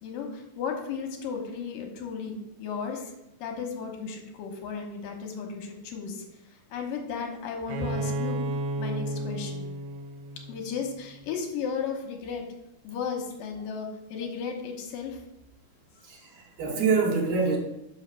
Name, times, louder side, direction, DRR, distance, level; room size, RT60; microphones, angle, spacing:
voice 1, 0.0-3.1 3.4-6.2 6.7-8.4 8.8-9.7 10.5-12.4 12.8-15.2, left 6 dB, 75° left, 3 dB, 2.6 m, -34 dB
Bowed string instrument, 7.7-11.3, right 1 dB, 85° right, 2.5 m, -33 dB
voice 2, 16.0-17.6, right 4 dB, 60° right, 1 dB, 2.0 m, -25 dB
5.7 x 5.6 x 6.4 m, 0.87 s
omnidirectional pair, 4.3 m